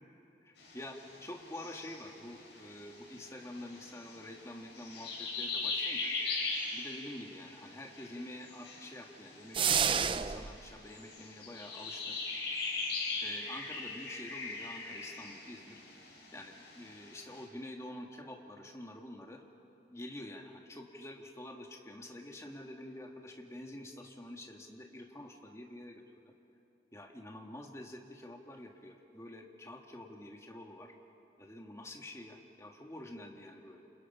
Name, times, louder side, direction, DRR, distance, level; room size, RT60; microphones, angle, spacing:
voice 1, 0.4-6.1 6.7-12.2 13.2-15.8 16.3-19.4 19.9-26.3 26.9-30.9 31.4-33.8, left 1 dB, 15° left, 1 dB, 1.8 m, -47 dB
sound 1, 0.6-17.4, left 3 dB, 80° left, 6.8 m, -41 dB
sound 2, 9.5-10.5, right 7 dB, 30° right, 0.5 m, -29 dB
29.0 x 27.5 x 5.6 m, 2.8 s
head